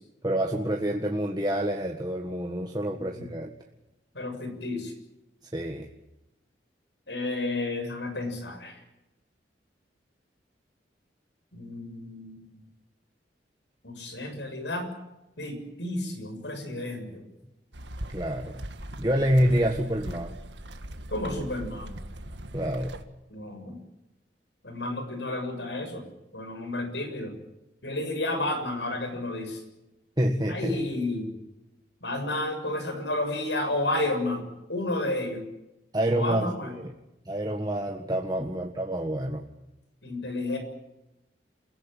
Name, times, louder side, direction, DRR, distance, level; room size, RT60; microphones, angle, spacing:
voice 1, 0.2-3.5 5.5-5.9 18.1-18.6 19.0-20.4 22.5-22.9 30.2-30.8 35.9-36.5 36.8-36.9 37.3-39.4, right 1 dB, 25° right, 2 dB, 1.7 m, -27 dB
voice 2, 2.9-3.3 4.1-4.9 7.1-8.8 11.5-12.4 13.8-14.9 15.4-17.2 21.1-21.9 23.3-23.8 24.6-26.0 26.3-27.3 27.8-29.6 30.5-31.3 32.0-34.4 34.7-35.5 36.1-36.7 40.0-40.6, left 2 dB, 80° left, 7 dB, 7.1 m, -31 dB
sound 1, 17.7-23.0, right 1 dB, 85° right, 1.9 m, -40 dB
28.5 x 16.5 x 9.1 m, 0.95 s
head